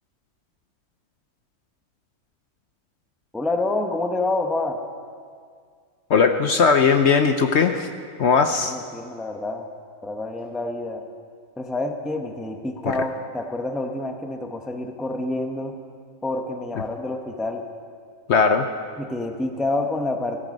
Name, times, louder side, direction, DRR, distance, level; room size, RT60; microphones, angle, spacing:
voice 1, 3.3-4.8 8.6-9.7 10.0-11.0 11.6-15.8 16.2-17.6 19.0-20.5, left 2 dB, ahead, 5 dB, 0.5 m, -28 dB
voice 2, 6.1-7.9 8.2-8.8 12.8-13.0 18.3-18.7, left 5 dB, 60° left, 7 dB, 0.8 m, -18 dB
16.0 x 13.5 x 5.2 m, 2.1 s
omnidirectional pair, 1.6 m